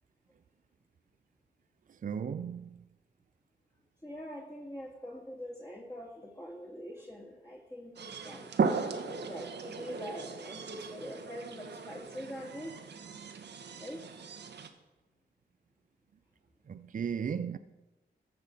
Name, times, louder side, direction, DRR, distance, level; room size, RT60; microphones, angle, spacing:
voice 1, 2.0-2.7 16.7-17.6, right 7 dB, 45° right, 0.5 m, -35 dB
voice 2, 4.0-12.8 13.8-14.1, equal, 20° left, 2.0 m, -44 dB
sound 1, 8.0-14.7, right 5 dB, 70° right, 1.0 m, -37 dB
14.5 x 5.8 x 5.1 m
cardioid pair, 50°, 18 cm